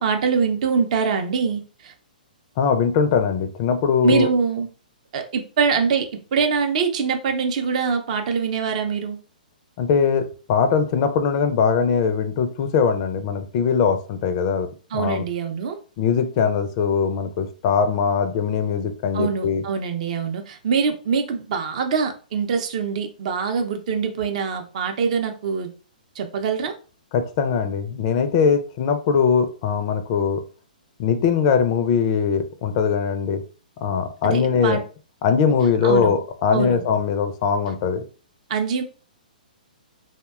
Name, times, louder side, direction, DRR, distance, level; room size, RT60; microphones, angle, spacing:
voice 1, 0.0-1.9 4.0-4.7 5.1-9.2 14.9-15.8 19.1-25.7 26.2-26.8 34.2-34.8 35.8-36.2 36.5-36.8 38.5-38.8, right 6 dB, 50° right, 6 dB, 0.5 m, -24 dB
voice 2, 2.6-4.3 9.8-14.7 14.9-15.2 16.0-19.6 27.1-30.4 31.0-33.4 33.8-34.8 35.2-38.0, left 6 dB, 40° left, 8 dB, 0.4 m, -21 dB
2.7 x 2.1 x 2.3 m, 0.37 s
figure-of-eight pair, 125°, 5 cm